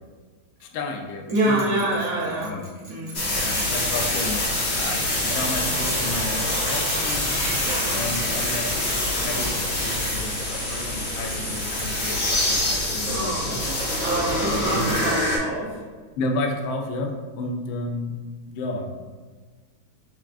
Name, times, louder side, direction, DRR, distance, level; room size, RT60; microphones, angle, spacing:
voice 1, 0.6-1.9 2.2-2.6 3.4-4.5 4.8-7.3 7.9-13.6 14.7-14.9 16.2-18.1 18.5-18.9, left 2 dB, 75° left, 3 dB, 1.2 m, -32 dB
Bell, 1.3-12.9, right 1 dB, 30° right, 0.5 m, -43 dB
voice 2, 1.3-2.5 2.9-3.2 7.6-8.0 13.0-15.8, right 1 dB, 75° right, -5 dB, 0.8 m, -26 dB
sound 1, 3.1-15.4, left 1 dB, 50° left, 0.7 m, -25 dB
5.7 x 2.4 x 2.4 m, 1.4 s
omnidirectional pair, 2.3 m